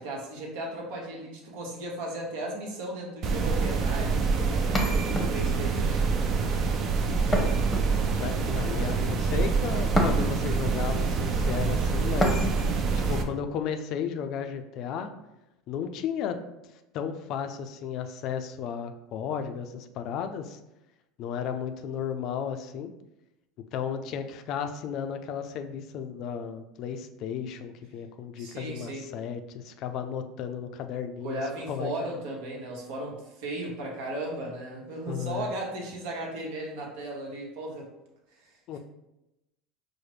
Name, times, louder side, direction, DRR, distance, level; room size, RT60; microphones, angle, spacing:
voice 1, 0.0-6.1 28.4-29.0 31.2-37.9 38.3-38.8, right 1 dB, 75° right, -1 dB, 1.1 m, -36 dB
sound 1, 3.2-13.2, right 4 dB, 45° right, 0.5 m, -26 dB
sound 2, 4.7-5.7 7.3-8.3 10.0-10.6 12.2-12.8, equal, 10° left, 0.8 m, -29 dB
voice 2, 8.2-12.5 12.9-15.1 15.7-16.4 16.9-20.6 21.2-22.9 23.7-31.4 31.7-32.1 35.1-35.5 38.7-38.8, left 8 dB, 55° left, 7 dB, 0.4 m, -34 dB
4.8 x 2.1 x 3.2 m, 0.92 s
supercardioid pair, 100°, 0 cm